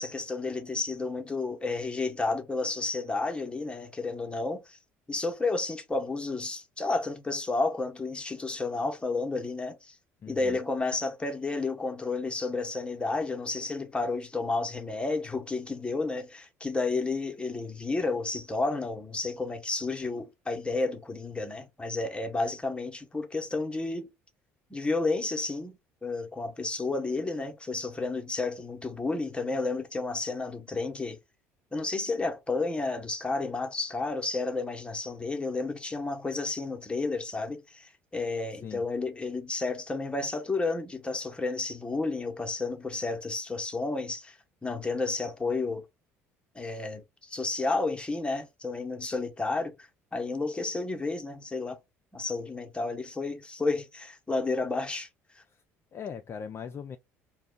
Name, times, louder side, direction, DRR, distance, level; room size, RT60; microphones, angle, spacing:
voice 1, 0.0-4.8 5.1-9.9 10.3-24.1 24.7-31.2 31.7-45.8 46.5-51.8 52.1-55.1 55.3-55.4, left 3 dB, 15° left, 0.8 m, -31 dB
voice 2, 10.2-10.6 38.6-38.8 55.5-55.6 55.9-57.0, left 7 dB, 35° left, 0.3 m, -40 dB
2.2 x 2.2 x 3.8 m
hypercardioid pair, 60°, 7 cm